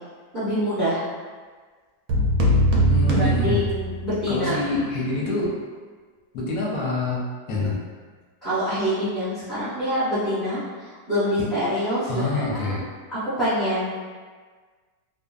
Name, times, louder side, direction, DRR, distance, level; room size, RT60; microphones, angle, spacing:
voice 1, 0.3-1.0 3.2-4.6 8.4-10.6 11.1-12.3 12.5-12.7 13.1-13.9, equal, 15° right, -14 dB, 1.0 m, -25 dB
sound 1, 2.1-4.3, right 1 dB, 70° right, 0.9 m, -21 dB
voice 2, 2.9-3.6 4.3-5.5 6.3-7.2 7.5-7.8 12.1-12.8, left 2 dB, 70° left, -5 dB, 0.9 m, -26 dB
2.6 x 2.3 x 2.3 m, 1.5 s
omnidirectional pair, 1.8 m